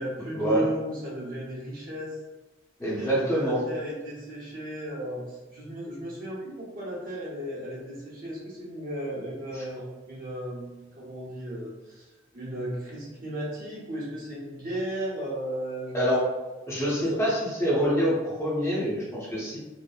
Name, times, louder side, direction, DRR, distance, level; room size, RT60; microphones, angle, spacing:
voice 1, 0.0-2.2 2.9-12.1 12.3-16.0 17.0-17.2, right 1 dB, 45° right, -6 dB, 0.8 m, -35 dB
voice 2, 2.8-3.6 15.9-16.2 16.7-19.6, equal, 15° left, -7 dB, 0.6 m, -26 dB
2.8 x 2.0 x 2.3 m, 1.1 s
head